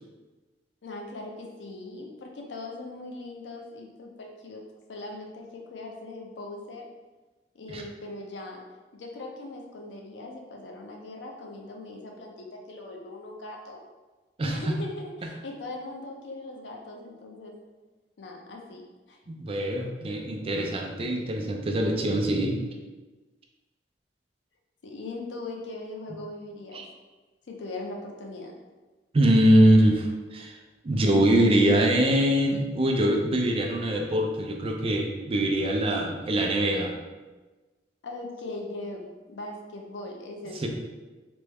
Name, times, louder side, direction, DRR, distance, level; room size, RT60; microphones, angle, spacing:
voice 1, 0.8-4.6 4.9-6.9 7.5-8.6 8.9-13.8 14.4-17.6 18.2-19.2 24.8-26.9 27.5-28.6 35.9-36.1 38.0-40.7, left 2 dB, 90° left, 1 dB, 0.5 m, -40 dB
voice 2, 14.4-14.7 19.3-22.6 26.7-26.9 29.1-30.6 30.8-36.9 40.6-40.7, right 1 dB, 35° right, 2 dB, 0.4 m, -23 dB
3.3 x 2.0 x 3.4 m, 1.2 s
head